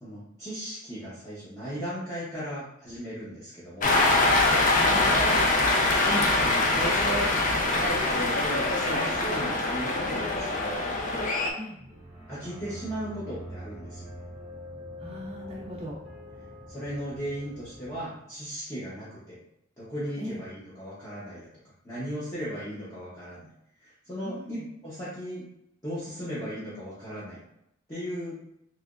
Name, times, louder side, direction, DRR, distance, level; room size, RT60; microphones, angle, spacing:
voice 1, 0.0-3.9 6.0-7.3 7.7-10.8 12.3-14.2 16.7-19.4 19.8-21.4 21.8-23.5 23.8-25.4 25.8-27.4 27.9-28.4, equal, 20° left, -11 dB, 0.8 m, -36 dB
Cheering, 3.8-11.5, left 2 dB, 40° left, 0.5 m, -24 dB
voice 2, 4.7-5.1 11.6-11.8 15.0-15.9 20.2-20.4 24.2-24.6, equal, 30° right, -4 dB, 0.4 m, -38 dB
sound 1, 11.7-18.1, equal, 5° right, 1.0 m, -44 dB
3.2 x 2.9 x 2.4 m, 0.80 s
head